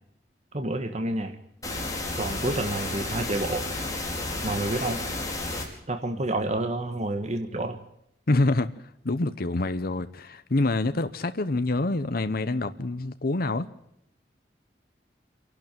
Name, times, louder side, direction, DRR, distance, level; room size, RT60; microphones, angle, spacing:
voice 1, 0.5-1.4 2.1-3.7 4.4-5.0 5.9-7.8, right 2 dB, 40° right, 6 dB, 1.6 m, -29 dB
sound 1, 1.6-5.6, left 2 dB, 20° left, 5.2 m, -32 dB
voice 2, 8.3-8.7 9.0-13.7, left 2 dB, 55° left, 11 dB, 0.9 m, -26 dB
27.5 x 12.0 x 9.1 m, 0.77 s
head